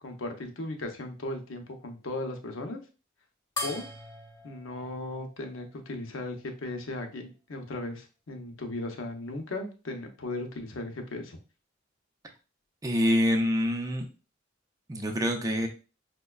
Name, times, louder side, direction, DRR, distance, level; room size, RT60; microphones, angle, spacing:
voice 1, 0.0-2.8 3.6-3.9 4.4-11.4, left 2 dB, 70° left, 4 dB, 0.7 m, -37 dB
sound 1, 3.6-6.4, left 3 dB, 20° left, 0.8 m, -40 dB
voice 2, 12.8-14.1 14.9-15.7, equal, 20° right, 4 dB, 0.5 m, -26 dB
5.2 x 2.2 x 2.3 m, 0.34 s
head